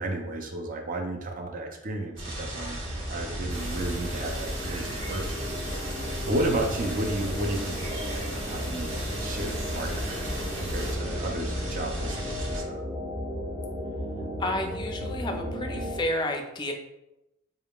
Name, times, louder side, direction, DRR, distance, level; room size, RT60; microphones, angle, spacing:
voice 1, 0.0-12.8, right 1 dB, 40° right, 4 dB, 0.5 m, -33 dB
sound 1, 2.2-16.0, equal, 15° right, 0.9 m, -36 dB
sound 2, 2.2-12.6, right 1 dB, 60° right, 1.2 m, -36 dB
sound 3, 3.5-10.9, right 1 dB, 75° right, 1.4 m, -38 dB
voice 2, 14.4-16.7, left 1 dB, 20° left, 4 dB, 0.4 m, -31 dB
4.3 x 3.5 x 2.3 m, 0.93 s
head